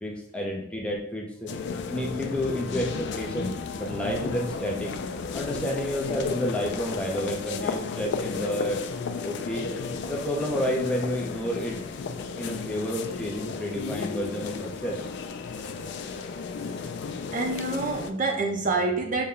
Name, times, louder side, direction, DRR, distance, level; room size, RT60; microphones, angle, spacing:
voice 1, 0.0-1.5 1.9-4.9 5.3-8.8 9.2-9.7 10.1-11.8 12.4-15.0, equal, 5° left, -1 dB, 0.5 m, -30 dB
sound 1, 1.5-18.1, left 5 dB, 60° left, 0.3 m, -34 dB
voice 2, 15.8-16.3 17.3-19.3, right 3 dB, 40° right, 2 dB, 0.6 m, -28 dB
5.5 x 2.2 x 3.7 m, 0.68 s
head